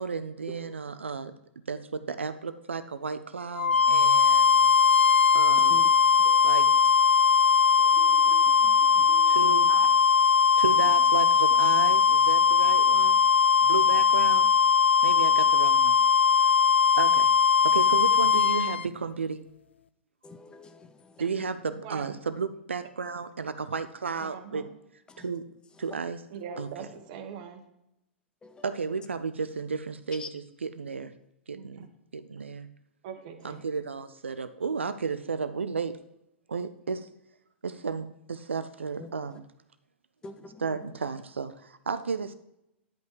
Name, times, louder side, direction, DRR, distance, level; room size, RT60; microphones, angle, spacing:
voice 1, 0.0-1.3 1.7-4.7 5.3-5.9 6.4-6.7 9.3-9.7 10.6-13.2 13.6-14.5 15.0-15.9 17.0-17.3 17.6-19.4 21.2-24.6 25.2-25.4 25.8-26.2 26.6-26.7 28.6-31.1 31.5-31.9 32.1-32.7 33.4-36.0 36.5-37.1 37.6-39.5 40.6-42.3, right 5 dB, 75° right, 0.5 m, -33 dB
sound 1, 3.5-18.8, left 6 dB, 70° left, 0.4 m, -20 dB
voice 2, 5.7-6.5 7.8-9.7 20.2-21.2 25.1-25.2 26.6-26.7 28.4-28.6 30.2-30.3 39.0-39.1 40.2-40.6, left 4 dB, 15° left, 0.5 m, -47 dB
voice 3, 21.7-22.1 24.2-24.7 26.3-27.6 31.5-31.9 33.0-33.6, right 7 dB, 45° right, 1.2 m, -41 dB
10.5 x 5.4 x 4.6 m
figure-of-eight pair, 105°, 6 cm